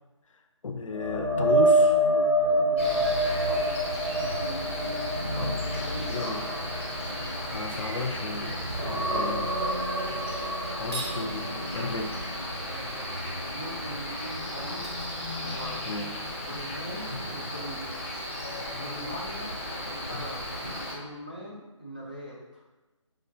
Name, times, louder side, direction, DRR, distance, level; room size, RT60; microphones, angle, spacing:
voice 1, 0.6-2.0 5.4-5.6 6.0-6.4 7.4-9.5 10.7-12.2 15.8-16.3 20.1-20.2, left 3 dB, 75° left, 5 dB, 0.5 m, -34 dB
sound 1, 0.9-8.4 8.7-12.6 12.9-13.2 16.5-16.6, right 1 dB, 85° right, 1.0 m, -27 dB
voice 2, 2.3-3.7 4.2-6.6 8.7-9.1 12.7-13.1 13.5-14.9 15.4-15.8 16.4-18.1 18.8-19.5 19.8-20.5 20.9-22.6, equal, 20° right, -6 dB, 0.3 m, -41 dB
Cricket, 2.8-20.9, left 1 dB, 25° left, 0.7 m, -34 dB
sound 2, 10.7-11.3 14.2-14.3 14.7-16.1, right 2 dB, 55° right, 0.7 m, -41 dB
5.1 x 2.2 x 2.7 m, 1.1 s
figure-of-eight pair, 170°, 16 cm